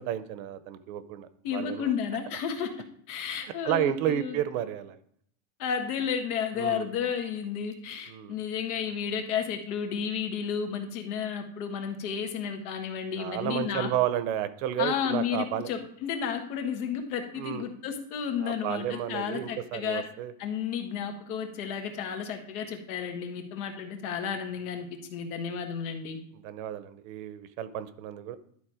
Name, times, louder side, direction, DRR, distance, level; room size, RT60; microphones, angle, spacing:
voice 1, 0.0-1.9 3.4-5.0 6.5-6.9 8.1-8.3 13.2-15.7 17.4-17.7 18.4-20.3 26.3-28.4, right 11 dB, 65° right, 13 dB, 0.8 m, -32 dB
voice 2, 1.4-2.7 3.1-4.4 5.6-13.9 14.8-20.0 20.4-26.2, left 7 dB, 85° left, 5 dB, 1.7 m, -32 dB
11.5 x 4.2 x 4.9 m, 0.65 s
supercardioid pair, 165°, 43 cm